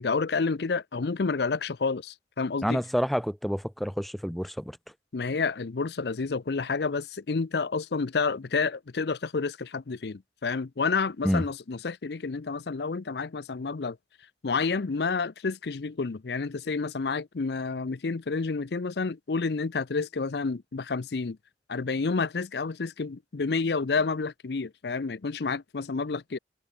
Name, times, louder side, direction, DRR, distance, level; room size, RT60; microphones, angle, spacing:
voice 1, 0.0-2.8 5.1-14.0 14.4-21.4 21.7-26.4, left 4 dB, 70° left, 0.6 m, -29 dB
voice 2, 2.6-4.8 11.2-11.4, equal, ahead, 0.4 m, -28 dB
head